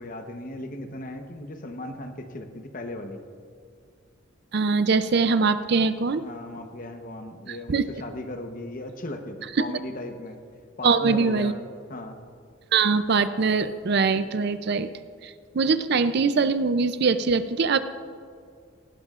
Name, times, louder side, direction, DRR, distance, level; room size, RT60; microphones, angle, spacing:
voice 1, 0.0-3.2 6.2-10.4 10.8-11.6 11.9-12.2, left 1 dB, 45° left, 6 dB, 1.0 m, -37 dB
voice 2, 4.5-6.3 7.7-7.8 10.8-11.5 12.7-14.9 15.2-17.8, right 4 dB, 55° right, 11 dB, 0.5 m, -22 dB
18.0 x 16.5 x 2.5 m, 2.2 s
head